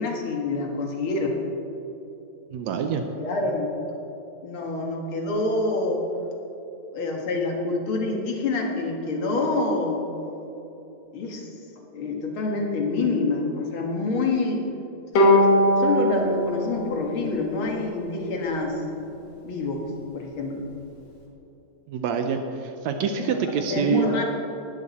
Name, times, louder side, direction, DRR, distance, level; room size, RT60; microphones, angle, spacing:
voice 1, 0.0-1.4 2.9-4.0 4.4-6.0 6.9-10.0 11.1-11.5 11.9-14.6 15.1-15.3 15.8-18.8 19.4-19.9 20.1-20.6 23.2-23.4 23.7-24.2, left 3 dB, 45° left, 1 dB, 2.0 m, -27 dB
voice 2, 2.5-3.0 21.9-24.2, right 6 dB, 75° right, 6 dB, 1.6 m, -26 dB
Bowed string instrument, 15.2-18.5, equal, 70° left, 3.6 m, -22 dB
18.5 x 11.5 x 4.3 m, 3.0 s
omnidirectional pair, 4.0 m